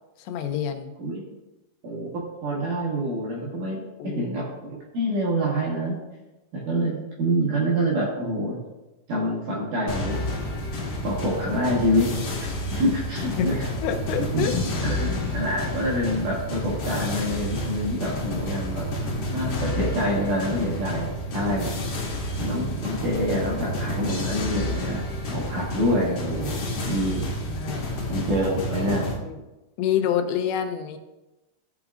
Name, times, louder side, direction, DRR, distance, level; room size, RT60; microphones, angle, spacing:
voice 1, 0.2-0.9 4.0-4.2 13.2-13.5 13.8-14.6 27.5-27.8 29.2-29.4 29.8-31.0, left 9 dB, 85° left, 6 dB, 2.9 m, -27 dB
voice 2, 1.8-6.0 6.5-8.6 9.1-10.3 11.0-12.1 12.4-13.7 14.3-14.5 14.8-18.9 19.3-21.7 22.4-25.0 25.3-27.3 27.8-29.1, equal, 60° right, -5 dB, 2.3 m, -26 dB
sound 1, 9.9-29.2, left 1 dB, 55° left, 1.8 m, -30 dB
sound 2, 10.1-28.4, left 1 dB, 30° left, 1.5 m, -41 dB
14.0 x 6.0 x 2.4 m, 1.0 s
omnidirectional pair, 5.1 m